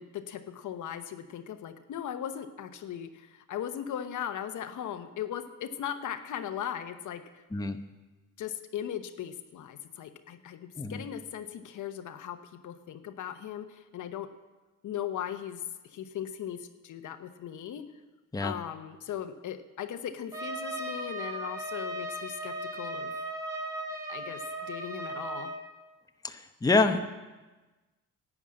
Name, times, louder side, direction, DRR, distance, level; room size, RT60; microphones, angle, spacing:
voice 1, 0.0-7.4 8.4-14.3 14.8-17.9 18.4-23.1 24.1-25.6, left 9 dB, 70° left, 9 dB, 0.9 m, -38 dB
Trumpet, 20.3-25.6, right 1 dB, 10° right, 2.0 m, -37 dB
voice 2, 26.6-27.0, left 3 dB, 10° left, 6 dB, 0.8 m, -25 dB
11.0 x 9.3 x 7.5 m, 1.2 s
cardioid pair, 90°, 32 cm